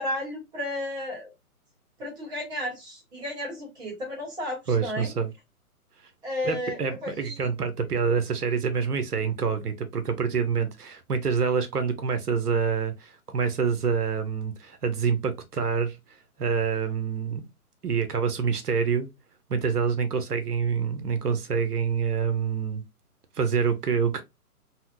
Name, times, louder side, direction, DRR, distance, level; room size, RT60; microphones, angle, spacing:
voice 1, 0.0-1.3 2.0-5.1 6.2-7.4, left 1 dB, 10° right, 1.1 m, -33 dB
voice 2, 4.7-5.3 6.4-16.0 16.4-17.5 17.8-19.1 19.5-22.8 23.4-24.2, right 6 dB, 80° right, 0.9 m, -26 dB
4.1 x 2.1 x 2.6 m
figure-of-eight pair, 135°, 46 cm